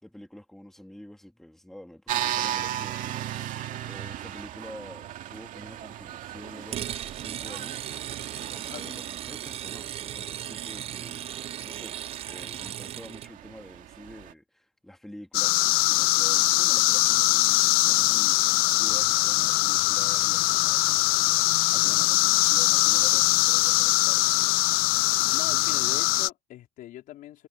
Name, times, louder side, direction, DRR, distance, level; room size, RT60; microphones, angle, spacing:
voice 1, 0.0-12.0 12.2-24.6, left 1 dB, ahead, 2.6 m, -47 dB
sound 1, 2.1-14.3, right 12 dB, 60° right, 2.3 m, -37 dB
sound 2, 6.7-13.3, right 11 dB, 40° right, 0.4 m, -37 dB
voice 2, 8.7-9.0 25.3-27.5, left 14 dB, 65° left, 4.2 m, -42 dB
sound 3, 15.3-26.3, left 21 dB, 85° left, 0.4 m, -22 dB
cardioid pair, 135°, 15 cm